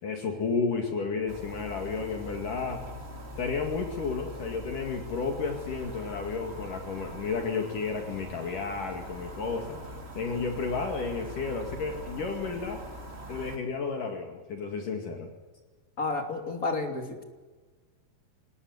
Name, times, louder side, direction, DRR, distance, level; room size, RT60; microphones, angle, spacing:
voice 1, 0.0-2.8 3.4-9.8 10.2-12.8 13.3-15.3, left 4 dB, 60° left, 3 dB, 3.6 m, -32 dB
sound 1, 1.3-13.6, equal, 20° right, 2.4 m, -42 dB
voice 2, 16.0-17.2, left 3 dB, 25° left, 4 dB, 3.0 m, -31 dB
26.0 x 19.5 x 9.6 m, 1.3 s
omnidirectional pair, 4.5 m